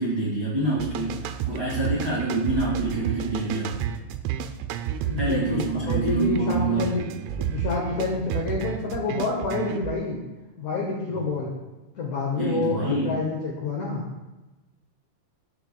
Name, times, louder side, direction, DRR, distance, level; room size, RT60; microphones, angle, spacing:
voice 1, 0.0-3.8 5.2-7.0 12.4-13.1, right 2 dB, 65° right, -8 dB, 1.1 m, -26 dB
sound 1, 0.8-9.9, right 9 dB, 90° right, 3.1 m, -31 dB
voice 2, 5.0-7.0 7.4-10.2 10.6-11.5 12.0-14.0, left 3 dB, 85° left, -2 dB, 1.6 m, -28 dB
15.0 x 6.9 x 2.3 m, 1.1 s
omnidirectional pair, 5.5 m